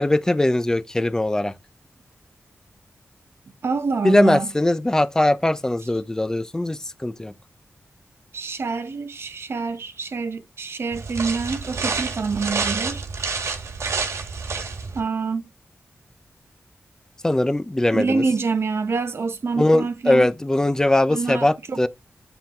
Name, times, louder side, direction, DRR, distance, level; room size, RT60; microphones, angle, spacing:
voice 1, 0.0-1.5 4.0-7.3 17.2-18.2 19.6-21.9, left 1 dB, 10° left, 0.6 m, -20 dB
voice 2, 3.6-4.5 8.3-13.0 14.9-15.4 17.9-20.3 21.1-21.8, right 4 dB, 55° right, 1.2 m, -26 dB
sound 1, 10.9-15.0, right 4 dB, 75° right, 2.1 m, -28 dB
9.4 x 3.9 x 4.4 m
wide cardioid pair, 165°, 5 cm